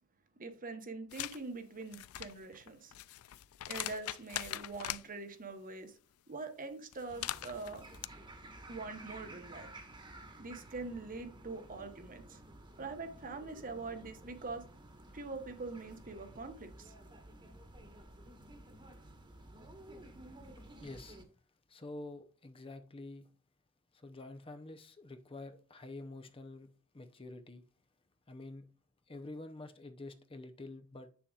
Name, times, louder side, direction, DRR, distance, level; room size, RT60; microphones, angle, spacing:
voice 1, 0.4-2.9 3.7-6.0 6.3-7.9 8.7-9.7 10.4-12.4 12.8-14.6 15.1-16.9, right 3 dB, 40° right, 1.0 m, -44 dB
sound 1, 1.1-1.4 1.8-5.0 6.9-8.1, left 14 dB, 75° left, 0.4 m, -41 dB
sound 2, 7.1-21.2, right 1 dB, 20° right, 1.4 m, -53 dB
voice 2, 20.5-21.2 21.7-23.3 23.9-27.6 28.3-28.7 29.1-31.1, left 2 dB, 25° left, 0.7 m, -48 dB
7.5 x 7.1 x 2.4 m
head